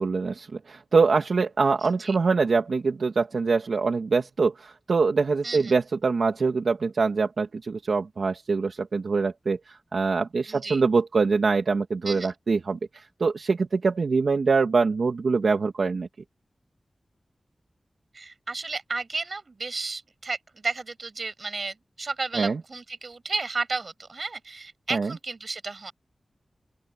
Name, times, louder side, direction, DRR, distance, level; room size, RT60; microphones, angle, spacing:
voice 1, 0.0-16.1 22.3-22.6 24.9-25.1, right 4 dB, 80° right, 2.3 m, -24 dB
voice 2, 1.8-2.2 5.4-5.7 10.5-10.8 12.0-12.3 18.1-20.4 20.6-25.9, right 3 dB, 60° right, 7.3 m, -33 dB
open air
wide cardioid pair, 70°, 0 cm